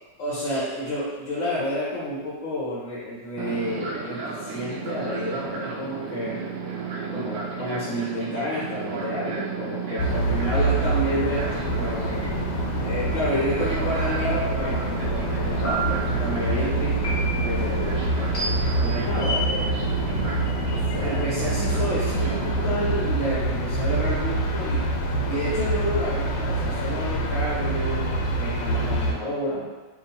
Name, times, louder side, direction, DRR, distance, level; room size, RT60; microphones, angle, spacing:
voice 1, 0.2-6.4 7.1-12.3 12.8-18.1 18.8-19.9 20.9-29.7, equal, 60° left, -8 dB, 0.9 m, -30 dB
Fixed-wing aircraft airplane, 3.4-23.1, right 5 dB, 70° right, 0.9 m, -33 dB
sound 1, 10.0-29.1, right 1 dB, 80° left, 1.3 m, -26 dB
sound 2, 14.2-14.8 15.6-16.2 17.0-17.6 18.3-18.9, right 2 dB, 35° left, 0.5 m, -31 dB
3.0 x 2.4 x 4.1 m, 1.3 s
omnidirectional pair, 2.0 m